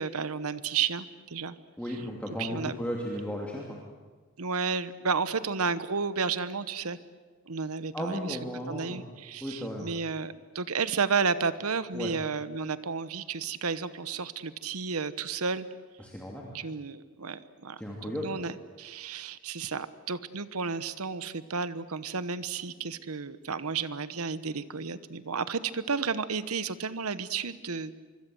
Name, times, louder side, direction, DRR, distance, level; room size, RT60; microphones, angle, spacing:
voice 1, 0.0-1.5 1.9-2.0 2.4-2.7 4.4-7.0 7.5-8.4 8.7-15.7 16.5-27.9, right 5 dB, 85° right, 14 dB, 1.1 m, -32 dB
voice 2, 1.8-3.8 7.9-9.0 9.4-9.9 11.9-12.1 16.0-16.5 17.8-18.3, equal, 5° left, -2 dB, 2.6 m, -35 dB
25.0 x 24.5 x 7.9 m, 1.4 s
head